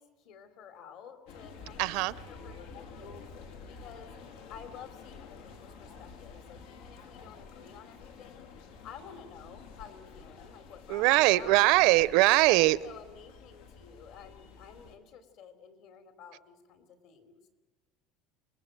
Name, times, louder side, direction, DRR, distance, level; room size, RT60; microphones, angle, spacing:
voice 1, 0.0-3.3 3.7-4.2 4.5-8.5 8.8-12.1 12.4-17.4, left 7 dB, 55° left, 9 dB, 3.9 m, -51 dB
sound 1, 1.3-15.0, left 5 dB, 85° left, 3.7 m, -50 dB
voice 2, 1.8-2.1 10.9-12.8, right 20 dB, 65° right, 19 dB, 0.7 m, -22 dB
28.5 x 20.5 x 7.9 m, 1.3 s
cardioid pair, 160°, 0 cm